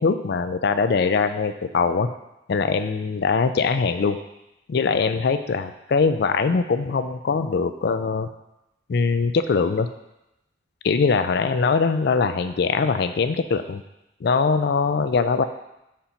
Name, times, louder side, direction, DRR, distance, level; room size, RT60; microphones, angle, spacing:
voice 1, 0.0-2.1 2.5-4.2 4.7-8.3 8.9-9.9 10.8-13.8 14.2-15.4, left 5 dB, 55° left, 10 dB, 0.4 m, -22 dB
5.1 x 4.4 x 5.7 m, 0.89 s
head